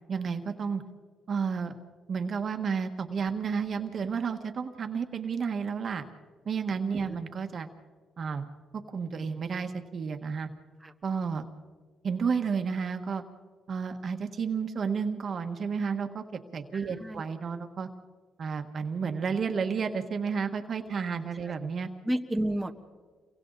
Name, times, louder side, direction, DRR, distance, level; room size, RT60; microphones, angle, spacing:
voice 1, 0.1-0.8 1.3-1.7 2.1-6.0 6.4-7.7 8.2-8.5 8.7-10.5 11.0-11.5 12.0-13.2 13.7-16.2 16.5-17.9 18.4-21.9, right 6 dB, 50° right, 7 dB, 1.5 m, -31 dB
voice 2, 16.7-17.2 22.0-22.7, right 1 dB, 10° right, 3 dB, 1.4 m, -31 dB
29.5 x 23.5 x 4.1 m, 1.5 s
cardioid pair, 90°, 0 cm